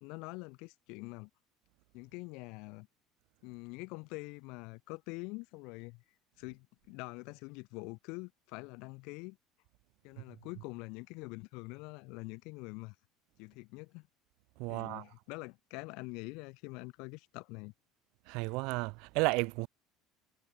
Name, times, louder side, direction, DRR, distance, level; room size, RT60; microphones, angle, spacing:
voice 1, 0.0-1.3 1.9-2.9 3.4-6.0 6.4-9.4 10.0-12.9 13.4-14.1 14.7-17.7, left 28 dB, 70° left, 1.5 m, -45 dB
voice 2, 14.6-15.0 18.3-19.7, right 28 dB, 70° right, 0.6 m, -32 dB
supercardioid pair, 125°, 0 cm